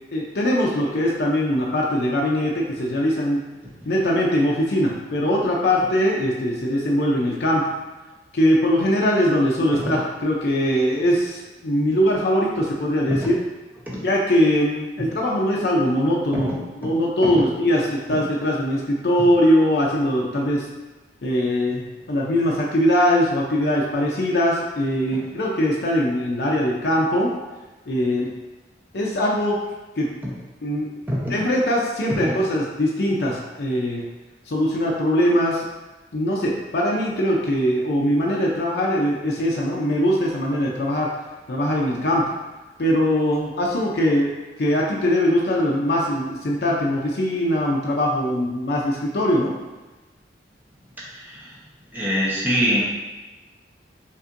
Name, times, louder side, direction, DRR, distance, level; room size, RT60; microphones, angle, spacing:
voice 1, 0.1-3.4 3.8-7.6 8.3-13.3 14.0-16.5 16.8-20.7 21.2-27.3 27.9-28.3 28.9-29.6 30.0-30.1 30.6-30.9 31.3-34.0 34.5-35.7 36.1-41.1 41.5-42.2 42.8-44.3 44.6-49.5, equal, 65° left, -3 dB, 0.5 m, -21 dB
voice 2, 51.0-51.6 51.9-53.0, equal, 10° right, -6 dB, 0.8 m, -24 dB
5.3 x 2.5 x 2.5 m, 1.2 s
head